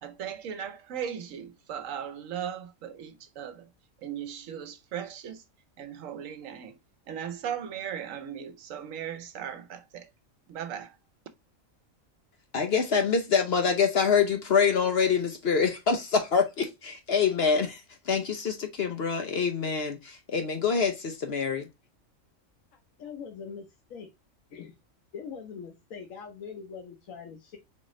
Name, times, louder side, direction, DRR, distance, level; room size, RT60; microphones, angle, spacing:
voice 1, 0.0-3.7 4.0-5.4 5.8-6.8 7.1-10.1 10.5-11.0, right 9 dB, 75° right, 1.1 m, -37 dB
voice 2, 12.5-21.7, left 6 dB, 55° left, 0.9 m, -26 dB
voice 3, 22.7-24.1 24.5-24.8 25.1-27.6, left 6 dB, 85° left, 1.2 m, -42 dB
4.2 x 3.7 x 3.1 m
omnidirectional pair, 1.4 m